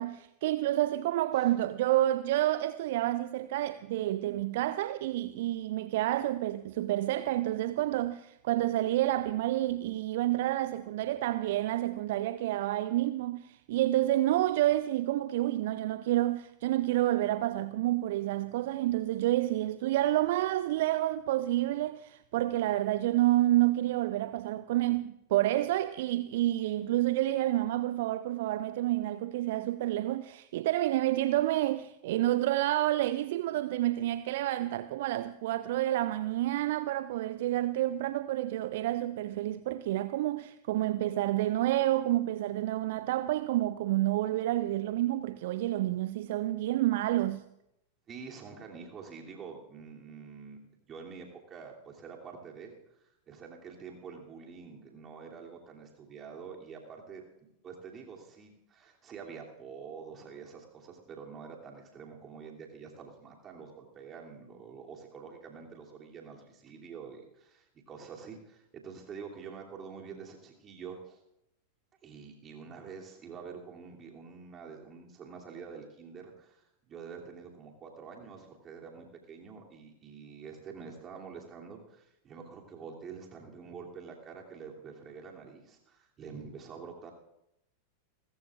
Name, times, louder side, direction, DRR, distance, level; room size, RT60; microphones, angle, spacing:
voice 1, 0.0-47.4, right 15 dB, 55° right, 0.4 m, -29 dB
voice 2, 48.1-71.2 72.0-87.1, right 6 dB, 25° right, 2.8 m, -47 dB
29.0 x 14.0 x 2.5 m
figure-of-eight pair, 90°, 0 cm